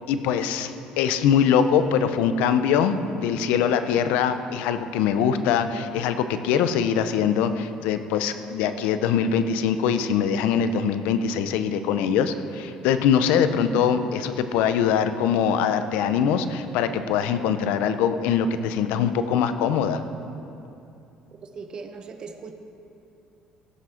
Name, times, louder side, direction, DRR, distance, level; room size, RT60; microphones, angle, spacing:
voice 1, 0.1-0.7 1.0-20.0, left 7 dB, 90° left, 10 dB, 0.6 m, -23 dB
voice 2, 21.4-22.5, right 5 dB, 35° right, 6 dB, 0.7 m, -39 dB
15.0 x 6.2 x 5.8 m, 2.7 s
cardioid pair, 125°, 2 cm